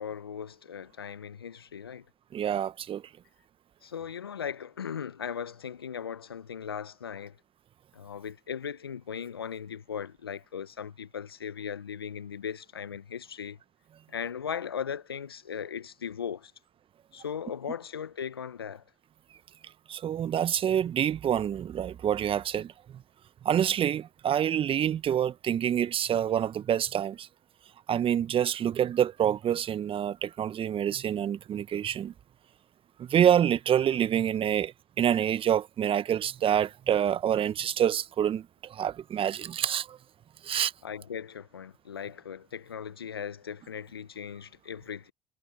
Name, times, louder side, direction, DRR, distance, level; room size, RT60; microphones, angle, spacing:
voice 1, 0.0-2.0 3.8-7.4 7.9-13.6 14.1-16.5 17.1-18.8 40.8-45.1, left 7 dB, 85° left, 1.0 m, -38 dB
voice 2, 2.3-3.0 19.9-22.7 23.4-27.3 27.9-32.1 33.0-34.7 35.0-38.4 38.7-40.0 40.4-40.7, right 9 dB, 45° right, 1.3 m, -27 dB
figure-of-eight pair, 50°, 12 cm